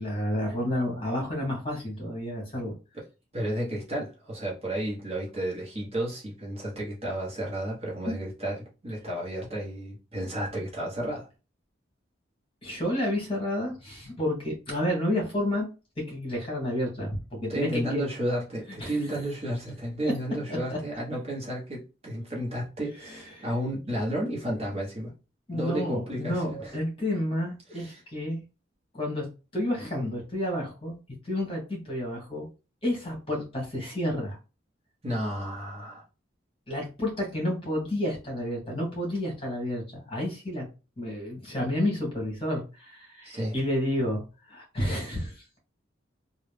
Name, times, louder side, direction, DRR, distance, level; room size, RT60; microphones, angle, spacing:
voice 1, 0.0-2.7 8.1-8.2 12.6-15.7 16.0-18.1 18.8-19.1 20.0-20.1 20.5-20.8 23.0-23.5 25.5-28.4 28.9-29.3 29.5-30.9 31.2-32.5 32.8-34.4 36.7-40.6 41.0-44.2 44.5-45.6, left 1 dB, 30° left, 1.5 m, -30 dB
voice 2, 3.3-11.3 17.5-25.1 25.5-26.7 27.7-28.0 35.0-36.0 43.2-43.6, right 1 dB, 35° right, 1.2 m, -32 dB
3.2 x 2.6 x 3.4 m
head